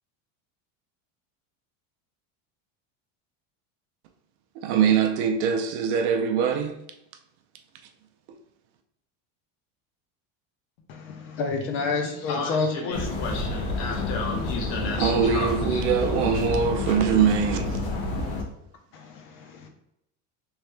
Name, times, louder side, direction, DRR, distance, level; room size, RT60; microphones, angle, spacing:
voice 1, 4.6-6.8 15.0-17.8, right 7 dB, 60° right, 0.6 m, -23 dB
voice 2, 10.9-13.1 18.9-19.7, left 4 dB, 35° left, 0.5 m, -29 dB
voice 3, 11.8-16.5, left 3 dB, 55° left, 1.0 m, -34 dB
sound 1, 12.9-18.4, left 2 dB, 85° left, 1.1 m, -29 dB
3.5 x 3.1 x 3.2 m
cardioid pair, 170°, 39 cm